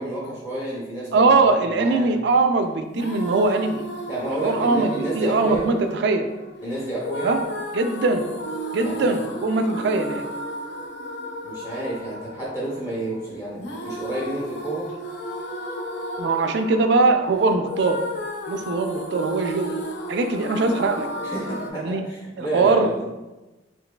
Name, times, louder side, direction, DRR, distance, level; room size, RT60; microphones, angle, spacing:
voice 1, 0.0-1.3 1.7-2.2 4.1-5.8 6.6-7.4 8.8-9.2 11.4-14.9 21.2-23.1, right 1 dB, 20° left, -7 dB, 0.6 m, -30 dB
voice 2, 1.1-3.8 4.4-6.3 7.2-7.4 7.7-8.3 8.7-10.3 16.2-18.0 18.5-19.8 20.1-21.1 21.7-22.0 22.4-22.9, right 3 dB, 60° right, 6 dB, 0.3 m, -21 dB
sound 1, 2.9-21.7, equal, 65° left, 0.5 m, -34 dB
3.8 x 3.1 x 2.3 m, 1.1 s
head